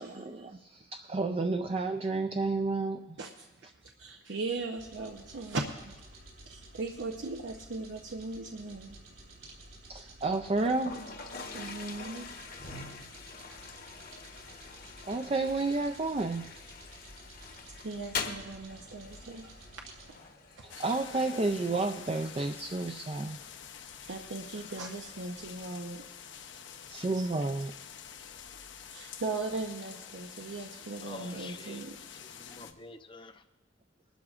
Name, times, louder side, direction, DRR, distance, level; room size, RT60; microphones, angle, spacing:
voice 1, 0.0-3.2 9.9-11.0 15.0-16.5 20.6-23.4 26.9-27.7, right 3 dB, 30° right, 6 dB, 0.4 m, -31 dB
voice 2, 3.2-6.0 6.5-9.0 11.5-12.3 17.7-19.8 20.6-21.0 24.0-26.1 27.2-27.3 28.9-32.0, right 3 dB, 85° right, 2 dB, 0.8 m, -39 dB
sound 1, 4.8-20.1, right 2 dB, 70° right, 3.8 m, -53 dB
Toilet flush, 10.6-27.6, left 5 dB, 50° left, 1.0 m, -46 dB
sound 2, 20.7-32.7, left 8 dB, 75° left, 0.8 m, -47 dB
voice 3, 31.0-31.8 32.1-33.4, left 2 dB, 25° left, 7 dB, 0.6 m, -47 dB
21.0 x 12.0 x 2.5 m, 1.1 s
head